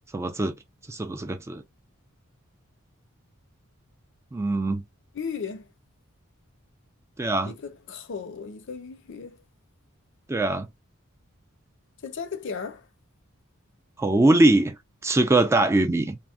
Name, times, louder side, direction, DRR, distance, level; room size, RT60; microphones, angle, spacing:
voice 1, 0.1-0.5 0.9-1.6 4.3-4.8 7.2-7.5 10.3-10.7 14.0-14.8 15.0-16.2, right 2 dB, 15° right, 0.3 m, -22 dB
voice 2, 5.1-5.7 7.5-9.4 12.0-12.9, left 6 dB, 60° left, 0.5 m, -35 dB
3.5 x 2.0 x 2.4 m
head